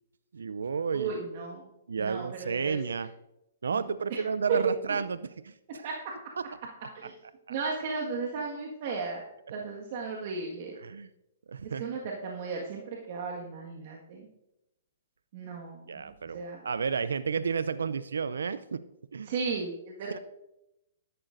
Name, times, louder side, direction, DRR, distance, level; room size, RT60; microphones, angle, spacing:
voice 1, 0.3-1.1 1.9-3.1 3.6-5.9 10.8-11.1 11.5-12.0 15.9-18.8 19.1-19.3, right 5 dB, 80° right, 15 dB, 0.4 m, -32 dB
voice 2, 0.9-1.7 2.0-2.8 3.7-3.8 4.1-4.2 4.5-4.6 4.8-4.9 5.7-6.1 6.9-7.1 7.5-9.2 9.5-10.8 11.6-14.3 15.3-16.6 19.2-20.2, right 5 dB, 50° right, -1 dB, 1.6 m, -35 dB
13.0 x 11.0 x 2.6 m, 0.88 s
hypercardioid pair, 130°, 0 cm